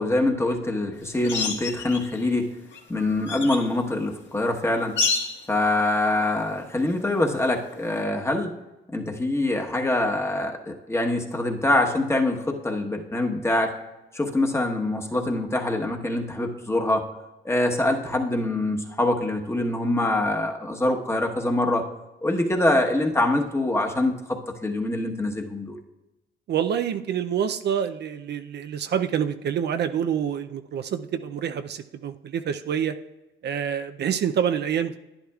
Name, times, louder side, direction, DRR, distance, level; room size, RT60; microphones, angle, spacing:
voice 1, 0.0-2.5 2.9-4.9 5.5-8.5 8.9-13.7 14.1-17.0 17.4-21.9 22.2-25.8, left 2 dB, 15° left, 2 dB, 1.2 m, -24 dB
sound 1, 1.2-2.3 2.7-3.7 5.0-5.5 7.7-7.8, left 4 dB, 65° left, 1.6 m, -28 dB
voice 2, 26.5-33.0 33.4-35.0, right 8 dB, 60° right, 9 dB, 0.5 m, -27 dB
11.5 x 10.0 x 2.4 m, 1.0 s
cardioid pair, 90°, 20 cm